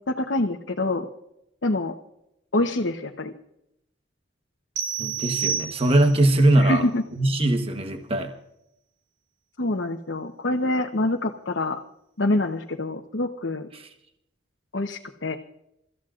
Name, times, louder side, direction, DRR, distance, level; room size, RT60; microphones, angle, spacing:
voice 1, 0.1-1.1 1.6-1.9 2.5-3.3 6.6-7.0 9.6-11.8 12.2-13.7 14.7-15.4, left 2 dB, 80° left, 2 dB, 1.0 m, -26 dB
sound 1, 4.8-6.3, right 8 dB, 85° right, 3.8 m, -29 dB
voice 2, 5.0-6.8 7.2-8.3 13.7-13.9, right 1 dB, 30° right, 5 dB, 1.2 m, -21 dB
29.0 x 14.5 x 2.5 m, 0.81 s
head